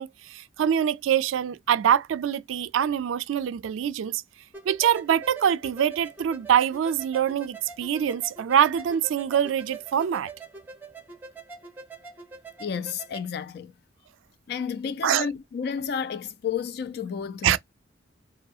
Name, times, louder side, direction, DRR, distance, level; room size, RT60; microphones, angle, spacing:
voice 1, 0.0-4.2 4.7-10.3 15.0-15.3 17.4-17.6, right 9 dB, 90° right, 0.3 m, -24 dB
sound 1, 4.5-13.3, right 3 dB, 10° right, 0.5 m, -44 dB
voice 2, 12.6-13.7 14.5-17.6, left 7 dB, 55° left, 0.3 m, -31 dB
2.6 x 2.3 x 2.6 m
head